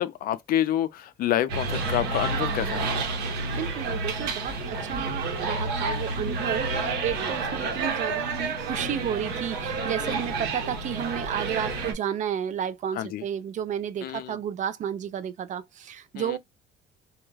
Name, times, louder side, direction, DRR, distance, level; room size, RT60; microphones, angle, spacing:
voice 1, 0.0-3.1 6.7-7.0 10.0-10.2 12.9-13.2 14.0-14.4 16.2-16.4, left 12 dB, 60° left, 0.4 m, -28 dB
sound 1, 1.5-11.9, right 3 dB, 85° right, 0.9 m, -29 dB
voice 2, 3.3-16.4, right 9 dB, 50° right, 0.4 m, -32 dB
2.3 x 2.2 x 3.0 m
cardioid pair, 110°, 17 cm